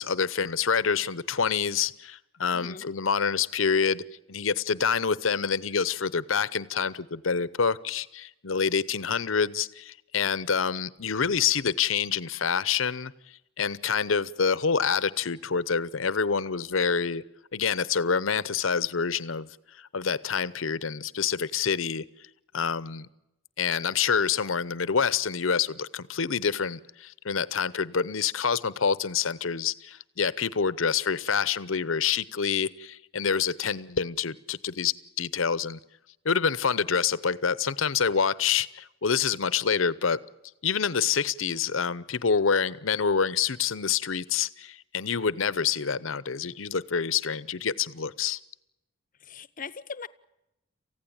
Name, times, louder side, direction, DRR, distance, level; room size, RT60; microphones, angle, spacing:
voice 1, 0.0-4.0 4.3-13.1 13.6-17.2 17.5-19.5 19.8-22.0 22.5-23.1 23.6-35.8 36.2-40.2 40.6-48.4, left 6 dB, 85° left, 0.9 m, -27 dB
voice 2, 2.5-2.9 49.2-50.1, left 5 dB, 45° left, 0.8 m, -40 dB
28.0 x 15.5 x 8.8 m
head